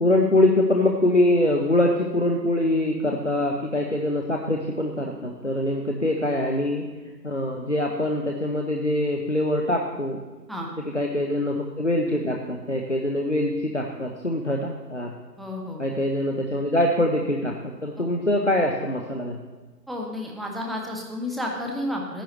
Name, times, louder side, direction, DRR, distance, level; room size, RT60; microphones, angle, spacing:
voice 1, 0.0-6.8 7.2-10.2 10.9-15.1 15.8-19.4, left 1 dB, 45° left, 1 dB, 0.7 m, -24 dB
voice 2, 15.4-16.0 18.0-18.1 19.9-22.2, left 1 dB, ahead, -1 dB, 0.6 m, -31 dB
13.0 x 10.0 x 3.1 m, 1.2 s
figure-of-eight pair, 170°, 50 cm